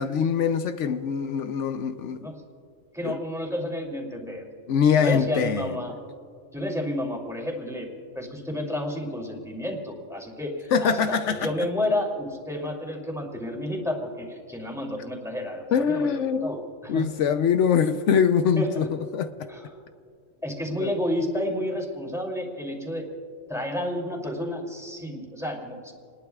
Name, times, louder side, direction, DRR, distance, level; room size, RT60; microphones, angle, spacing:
voice 1, 0.0-2.2 3.0-3.2 4.7-5.8 10.7-11.5 15.7-18.8 19.1-19.3 20.8-21.0, left 7 dB, 80° left, 1.0 m, -23 dB
voice 2, 2.9-4.4 5.0-5.9 6.5-7.9 8.1-16.1 16.4-17.0 18.6-18.9 19.5-19.7 20.4-23.1 23.5-25.9, left 1 dB, ahead, 2.8 m, -30 dB
28.5 x 20.5 x 2.4 m
omnidirectional pair, 1.2 m